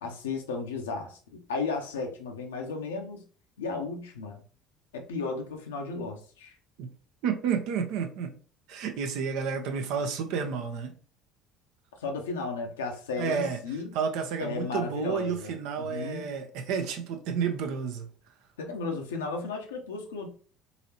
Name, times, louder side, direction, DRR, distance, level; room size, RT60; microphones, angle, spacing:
voice 1, 0.0-3.2 3.6-4.4 4.9-6.5 12.0-14.0 14.4-16.2 18.6-20.3, left 4 dB, 80° left, 0.7 m, -34 dB
voice 2, 7.2-8.4 8.7-11.0 13.2-13.6 13.9-18.1, right 6 dB, 65° right, 0.6 m, -31 dB
3.9 x 2.8 x 2.8 m
figure-of-eight pair, 60°, 0 cm